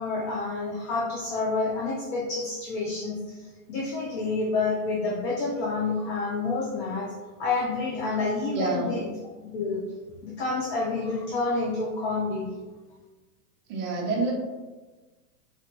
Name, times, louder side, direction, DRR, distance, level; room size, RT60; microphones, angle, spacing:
voice 1, 0.0-7.1 7.4-9.0 9.5-9.8 10.2-12.5, left 3 dB, 30° left, -3 dB, 0.5 m, -28 dB
voice 2, 8.5-9.0 13.7-14.3, right 3 dB, 25° right, -2 dB, 0.7 m, -27 dB
4.0 x 3.2 x 3.0 m, 1.2 s
hypercardioid pair, 145°, 46 cm